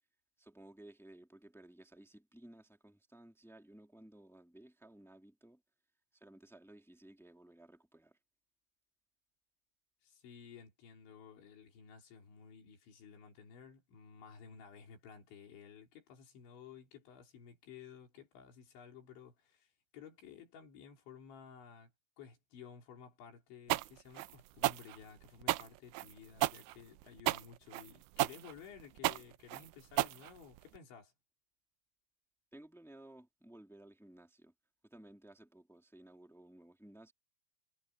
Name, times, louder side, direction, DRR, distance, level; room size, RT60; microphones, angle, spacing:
voice 1, 0.4-5.6 6.1-8.2 32.5-34.5 34.8-37.1, right 1 dB, ahead, 1.4 m, -57 dB
voice 2, 10.0-21.9 22.2-31.1, left 7 dB, 75° left, 6.3 m, -55 dB
sound 1, 23.7-30.8, right 18 dB, 85° right, 3.0 m, -34 dB
omnidirectional pair, 5.3 m